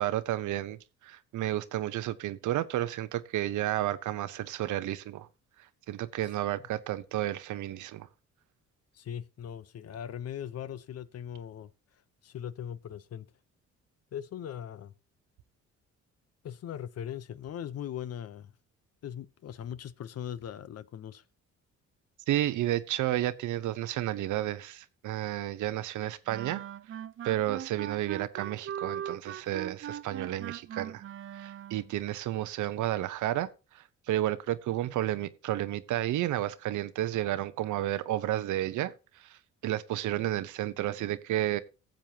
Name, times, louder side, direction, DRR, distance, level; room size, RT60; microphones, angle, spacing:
voice 1, 0.0-5.3 5.9-8.1 22.3-26.6 27.2-31.0 31.3-33.5 33.7-41.6, right 13 dB, 80° right, 0.8 m, -31 dB
voice 2, 8.9-11.7 12.2-13.3 14.1-14.9 16.4-18.5 19.0-21.2, left 9 dB, 55° left, 0.7 m, -40 dB
sound 1, 26.3-32.0, right 10 dB, 45° right, 0.5 m, -40 dB
16.0 x 7.5 x 2.8 m
cardioid pair, 90°, 30 cm